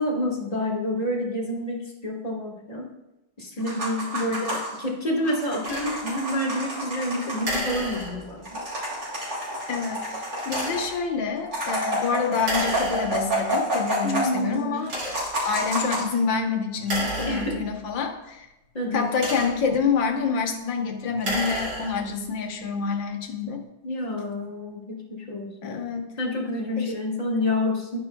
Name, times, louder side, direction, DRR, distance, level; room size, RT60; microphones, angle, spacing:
voice 1, 0.0-2.9 3.4-8.4 14.0-14.9 17.3-17.6 18.7-19.1 23.8-25.8 26.2-28.0, left 1 dB, 20° left, -2 dB, 1.4 m, -28 dB
sound 1, 3.6-4.9 5.2-7.6 7.9-8.0 8.3-11.0 11.4-14.5 14.9-16.1, right 1 dB, 45° right, 3.3 m, -29 dB
sound 2, 5.6-5.9 7.4-8.5 10.4-11.0 12.4-13.4 14.1-14.2 14.8-15.4 16.8-17.9 18.9-19.8 21.1-22.2, right 1 dB, 65° right, 3.4 m, -32 dB
voice 2, 9.7-18.5 18.9-23.6 25.6-26.1 26.8-26.9, left 5 dB, 70° left, 3 dB, 1.8 m, -27 dB
11.0 x 9.9 x 2.3 m, 0.96 s
omnidirectional pair, 2.2 m